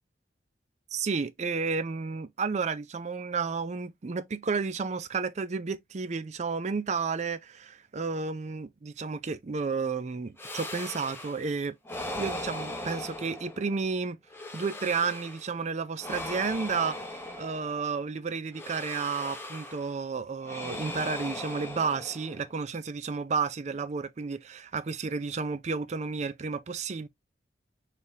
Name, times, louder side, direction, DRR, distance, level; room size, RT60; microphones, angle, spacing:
voice 1, 0.9-11.8 12.2-14.2 14.5-27.1, right 5 dB, 40° right, 0.4 m, -32 dB
sound 1, 10.4-11.5 11.8-13.8 14.3-15.5 16.0-18.0 18.5-19.9 20.4-22.5, left 1 dB, 15° left, 0.9 m, -39 dB
4.6 x 3.4 x 2.7 m
head